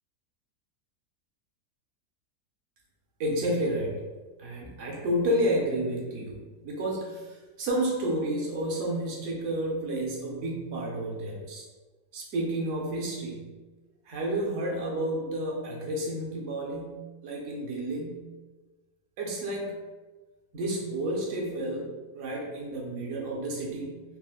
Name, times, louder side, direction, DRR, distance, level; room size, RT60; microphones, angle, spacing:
voice 1, 3.2-4.0 4.4-6.4 6.6-11.6 12.1-13.5 14.1-18.2 19.2-19.7 20.5-24.0, right 1 dB, 60° right, -2 dB, 0.9 m, -31 dB
4.2 x 2.1 x 2.3 m, 1.3 s
omnidirectional pair, 1.7 m